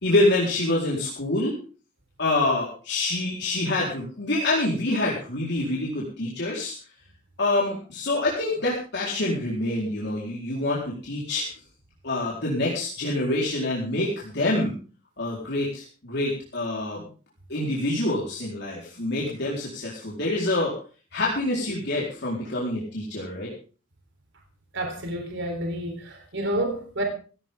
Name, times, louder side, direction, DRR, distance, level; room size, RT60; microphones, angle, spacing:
voice 1, 0.0-1.5 2.2-6.7 7.4-11.4 12.0-14.7 15.2-17.0 17.5-20.7 21.1-23.5, left 2 dB, 60° left, 4.2 m, -26 dB
voice 2, 24.7-27.0, right 1 dB, 65° right, 3.7 m, -29 dB
16.5 x 16.0 x 3.7 m
head